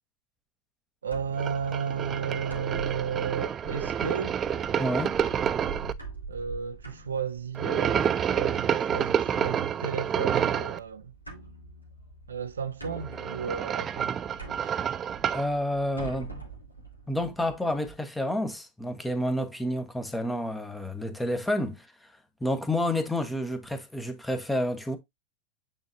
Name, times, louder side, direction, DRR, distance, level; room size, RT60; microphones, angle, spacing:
voice 1, 1.0-4.4 6.3-11.1 12.3-14.2, right 7 dB, 70° right, 0.7 m, -33 dB
sound 1, 1.1-17.9, right 3 dB, 85° left, 2.2 m, -45 dB
sound 2, 1.4-5.9 7.5-10.8 12.9-15.5, right 8 dB, 25° right, 0.4 m, -29 dB
voice 2, 4.8-5.2 15.3-16.3 17.1-21.9 22.4-25.0, left 1 dB, 5° left, 1.3 m, -29 dB
8.8 x 3.8 x 2.8 m
figure-of-eight pair, 90°, 0 cm